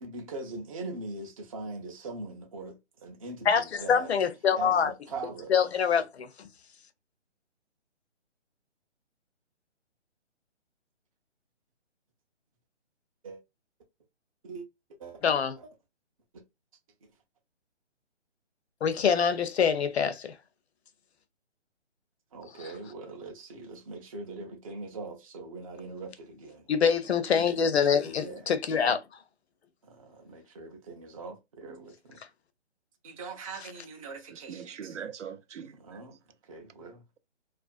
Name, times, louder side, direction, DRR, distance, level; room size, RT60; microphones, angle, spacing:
voice 1, 0.0-4.1 4.6-5.5 13.2-13.4 14.4-14.7 15.0-15.2 15.6-15.7 22.3-26.7 27.7-28.5 29.8-32.2 33.0-35.0 35.7-36.2 36.4-37.0, right 3 dB, 30° right, 0.5 m, -42 dB
voice 2, 3.5-4.9 5.5-6.5 15.2-15.6 18.8-20.3 26.7-29.0, left 7 dB, 65° left, 0.6 m, -25 dB
voice 3, 34.3-36.0, right 7 dB, 85° right, 0.5 m, -42 dB
2.4 x 2.2 x 2.3 m
figure-of-eight pair, 145°, 36 cm